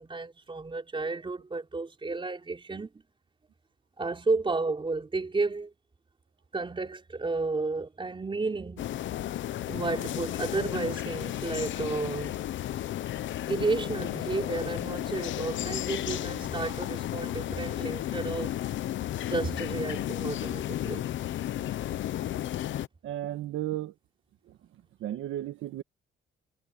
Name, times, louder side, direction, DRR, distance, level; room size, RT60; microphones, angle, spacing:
voice 1, 0.0-2.9 4.0-5.7 6.5-8.9 9.7-12.4 13.5-18.6 19.2-21.0, right 3 dB, 25° right, 4.1 m, -32 dB
sound 1, 8.8-22.9, left 13 dB, 70° left, 0.9 m, -33 dB
voice 2, 23.0-23.9 25.0-25.8, right 13 dB, 85° right, 1.6 m, -34 dB
cardioid pair, 90°, 20 cm